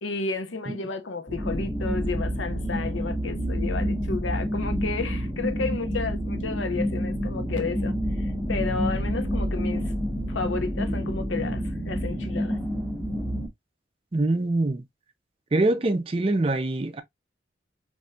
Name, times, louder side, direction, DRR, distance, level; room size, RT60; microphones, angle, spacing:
voice 1, 0.0-9.9 10.3-12.6, left 4 dB, 90° left, 0.7 m, -32 dB
sound 1, 1.3-13.5, equal, 5° left, 0.9 m, -28 dB
voice 2, 14.1-14.8 15.5-17.0, right 2 dB, 30° right, 0.4 m, -24 dB
4.1 x 2.6 x 2.3 m
head